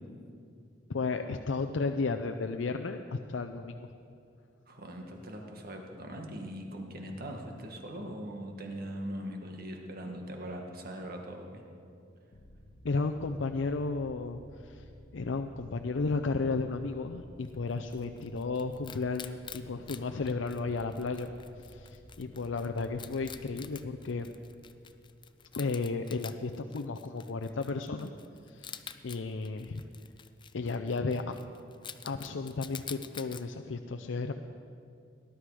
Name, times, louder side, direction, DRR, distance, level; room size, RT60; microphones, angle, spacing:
voice 1, 0.9-3.9 12.8-14.9 15.1-21.3 21.6-24.3 25.6-28.1 28.5-29.8 30.5-31.4 32.0-34.3, left 3 dB, 85° left, 6 dB, 0.5 m, -33 dB
voice 2, 4.7-11.6, equal, 55° right, 2 dB, 1.7 m, -41 dB
sound 1, 12.3-25.7, equal, 70° left, 1.0 m, -54 dB
Wild animals, 17.4-33.4, left 8 dB, 25° left, 0.5 m, -49 dB
19.0 x 11.5 x 4.9 m, 2.4 s
head